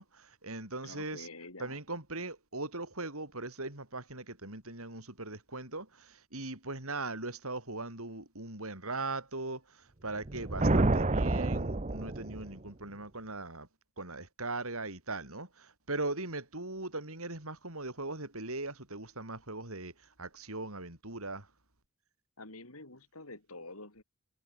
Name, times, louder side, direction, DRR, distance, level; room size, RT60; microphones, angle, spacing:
voice 1, 0.0-1.3 1.6-13.7 14.0-21.5, right 2 dB, 70° right, 7.7 m, -40 dB
voice 2, 0.8-1.8 22.4-24.0, left 2 dB, 75° left, 6.3 m, -47 dB
sound 1, 10.2-12.7, right 2 dB, 30° right, 1.0 m, -29 dB
head